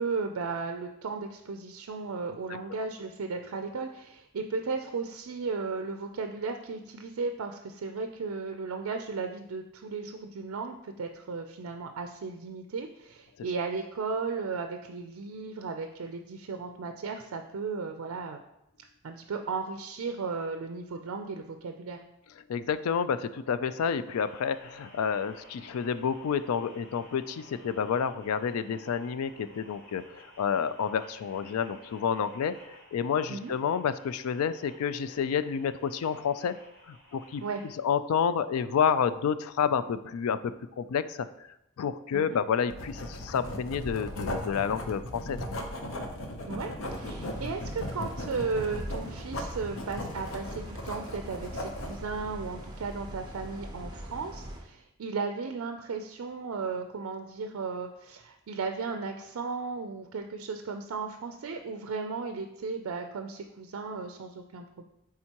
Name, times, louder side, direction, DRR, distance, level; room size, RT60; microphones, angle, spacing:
voice 1, 0.0-18.4 19.0-22.0 33.3-33.5 37.4-37.6 42.1-42.4 46.5-64.8, right 4 dB, 80° right, 6 dB, 0.4 m, -35 dB
voice 2, 22.5-36.6 36.9-37.4 37.8-41.3 41.8-45.4, left 7 dB, 90° left, 13 dB, 0.3 m, -29 dB
sound 1, 24.0-37.7, equal, 10° left, 2.0 m, -55 dB
Writing, 42.7-52.0, left 1 dB, 70° left, 0.8 m, -37 dB
sound 2, 46.8-54.6, right 1 dB, 20° right, 0.8 m, -42 dB
8.8 x 3.7 x 2.9 m, 0.84 s
head